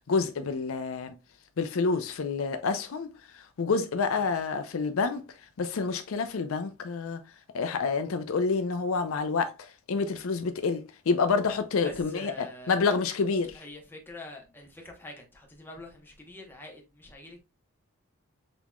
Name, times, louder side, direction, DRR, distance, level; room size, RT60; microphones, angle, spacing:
voice 1, 0.1-1.1 1.6-3.1 3.3-5.2 5.6-7.2 7.5-13.6, left 4 dB, 65° left, 0.5 m, -28 dB
voice 2, 11.8-13.0 13.5-17.4, left 1 dB, 10° left, 0.9 m, -45 dB
6.1 x 3.0 x 2.2 m
head